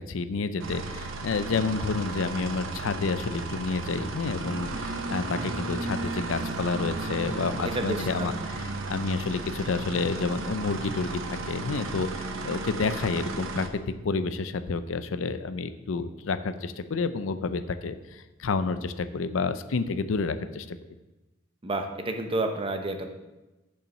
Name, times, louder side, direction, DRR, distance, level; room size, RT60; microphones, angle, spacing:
voice 1, 0.0-20.8, left 4 dB, 80° left, 11 dB, 0.5 m, -30 dB
sound 1, 0.6-13.7, right 3 dB, 90° right, 0.8 m, -34 dB
voice 2, 7.4-8.4 21.6-23.1, right 2 dB, 25° right, 5 dB, 0.8 m, -31 dB
7.0 x 5.6 x 6.5 m, 1.1 s
head